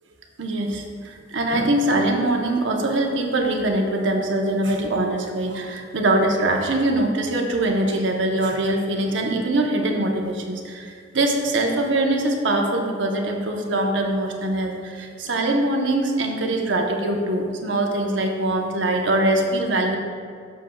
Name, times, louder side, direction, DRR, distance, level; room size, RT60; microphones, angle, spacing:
voice 1, 0.4-20.0, right 1 dB, 70° right, 2 dB, 0.9 m, -23 dB
13.5 x 6.5 x 2.3 m, 2.1 s
head